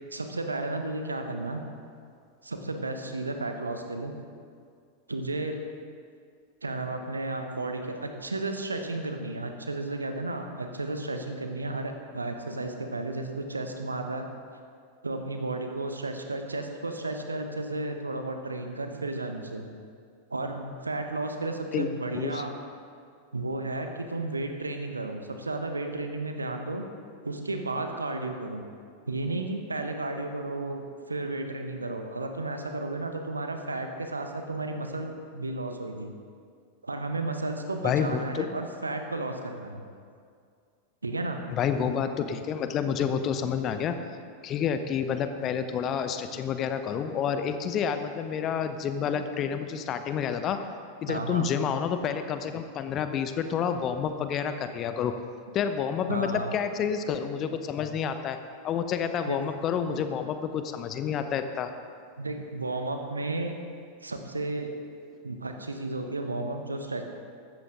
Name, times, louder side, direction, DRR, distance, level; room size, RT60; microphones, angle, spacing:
voice 1, 0.1-1.6 2.4-4.1 5.1-5.6 6.6-14.3 15.0-19.7 20.3-22.6 23.3-26.8 27.2-28.6 29.1-36.1 36.8-39.8 41.0-41.5 51.1-51.5 56.1-56.5 59.3-59.4 59.9-60.0 62.2-63.5 64.0-64.7 65.2-67.0, right 2 dB, 80° right, 5 dB, 1.2 m, -33 dB
voice 2, 37.8-38.5 41.5-44.0 44.4-50.6 51.0-55.1 55.5-58.4 58.6-61.7, left 7 dB, 30° left, 9 dB, 0.9 m, -29 dB
15.0 x 13.0 x 3.8 m, 2.2 s
figure-of-eight pair, 90°, 0 cm